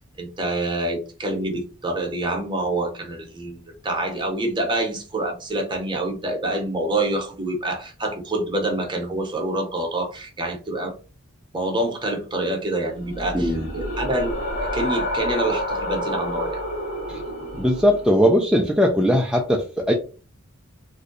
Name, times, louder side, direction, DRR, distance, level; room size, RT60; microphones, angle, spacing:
voice 1, 0.2-10.9 11.5-14.3 14.6-16.6, right 1 dB, 25° right, 0.8 m, -26 dB
sound 1, 13.0-18.1, equal, 45° left, 1.3 m, -29 dB
voice 2, 13.3-13.7 17.1-17.2 17.5-19.9, equal, 5° right, 0.3 m, -19 dB
2.6 x 2.2 x 3.8 m
head